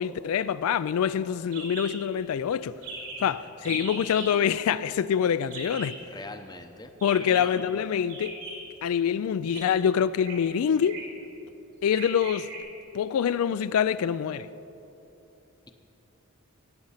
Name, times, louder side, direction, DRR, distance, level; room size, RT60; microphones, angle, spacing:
voice 1, 0.0-2.7 3.2-6.0 7.0-8.4 8.8-11.0 11.8-12.5 12.9-14.5, left 8 dB, 80° left, 0.3 m, -25 dB
sound 1, 1.5-1.9 2.2-2.3 2.5-2.6 2.8-3.3 3.6-4.3 5.5-6.0 7.0-7.5 8.1-8.8 9.4-9.6 10.2-10.4 10.8-11.2 11.9-12.6, right 3 dB, 80° right, 3.5 m, -39 dB
voice 2, 6.0-7.5, left 2 dB, 20° left, 0.7 m, -43 dB
16.5 x 9.0 x 5.7 m
head